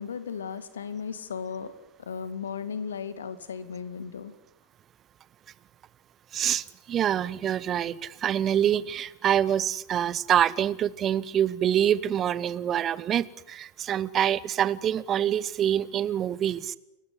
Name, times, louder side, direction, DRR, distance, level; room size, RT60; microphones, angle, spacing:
voice 1, 0.0-1.7 2.0-4.3, left 6 dB, 65° left, 12 dB, 2.2 m, -35 dB
voice 2, 6.3-16.8, right 10 dB, 30° right, 20 dB, 0.8 m, -26 dB
29.5 x 15.5 x 9.8 m, 0.92 s
figure-of-eight pair, 90°, 0 cm